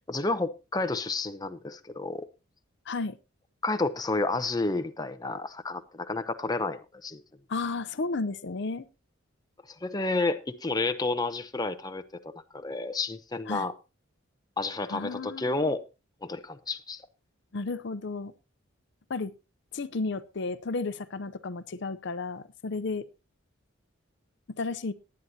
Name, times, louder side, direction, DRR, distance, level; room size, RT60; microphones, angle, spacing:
voice 1, 0.1-2.3 3.6-7.2 9.7-13.7 14.6-15.8 16.2-17.0, left 3 dB, 20° left, 0.7 m, -30 dB
voice 2, 2.9-3.2 7.5-8.9 13.5-13.7 14.9-15.7 17.5-18.3 19.1-19.3 19.7-23.1 24.5-24.9, left 3 dB, 60° left, 0.6 m, -33 dB
18.5 x 9.7 x 2.8 m
head